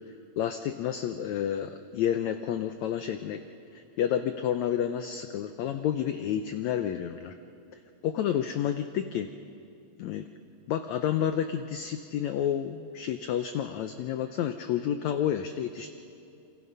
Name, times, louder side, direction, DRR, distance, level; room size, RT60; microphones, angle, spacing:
voice 1, 0.4-3.4 3.7-7.3 8.0-9.3 10.0-10.3 10.7-15.9, left 10 dB, 80° left, 8 dB, 1.6 m, -30 dB
28.0 x 24.5 x 5.5 m, 2.6 s
omnidirectional pair, 4.0 m